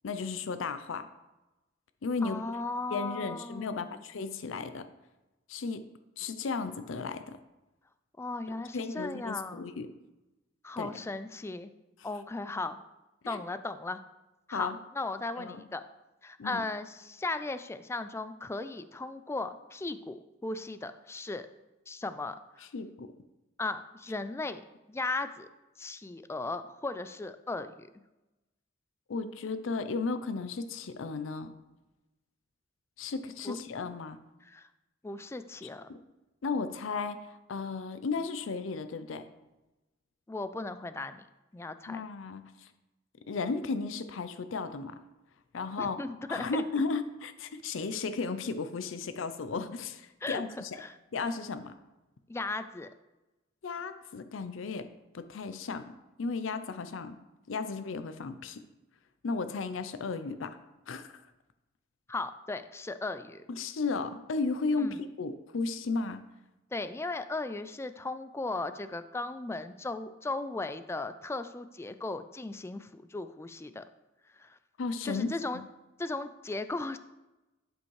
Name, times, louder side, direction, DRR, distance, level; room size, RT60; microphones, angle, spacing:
voice 1, 0.0-1.1 2.0-2.4 2.9-4.9 5.5-5.8 6.2-7.4 8.7-9.9 10.8-11.0 13.2-13.4 14.5-14.8 15.4-15.6 16.4-16.6 22.7-23.1 29.1-31.5 33.0-34.2 35.9-36.0 36.4-39.2 41.9-42.7 43.3-45.0 45.5-46.0 46.3-50.8 51.1-51.7 53.6-54.9 55.1-57.2 57.5-58.6 59.2-60.6 60.9-61.1 63.5-66.3 74.8-75.7, left 4 dB, 80° left, 10 dB, 0.5 m, -34 dB
voice 2, 2.2-4.0 8.2-9.6 10.6-11.7 12.0-12.8 13.3-14.0 14.5-15.8 16.2-21.5 21.9-22.7 23.6-24.6 24.9-25.5 25.8-27.9 33.4-33.6 34.4-34.7 35.0-35.9 40.3-41.3 41.5-42.1 45.8-46.6 50.2-51.0 52.3-52.9 62.1-63.4 64.8-65.0 66.7-73.8 74.3-74.6 75.0-75.6 76.0-77.0, left 2 dB, 15° left, 11 dB, 0.3 m, -37 dB
11.5 x 5.1 x 3.2 m, 1.0 s
head